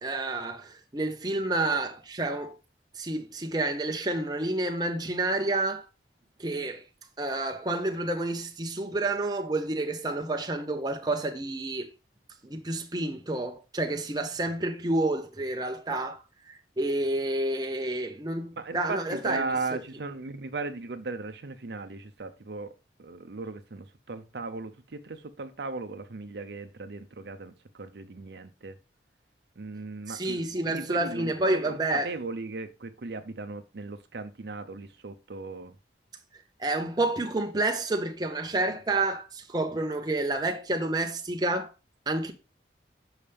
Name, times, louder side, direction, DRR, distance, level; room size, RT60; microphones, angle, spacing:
voice 1, 0.0-2.6 3.0-5.8 6.4-6.8 7.2-11.9 12.4-16.2 16.5-19.5 30.1-32.1 36.6-41.7 42.1-42.3, right 2 dB, 25° right, 0.8 m, -29 dB
voice 2, 18.6-22.7 23.0-28.8 29.6-35.8, right 3 dB, 70° right, 0.6 m, -37 dB
7.0 x 5.7 x 3.4 m
head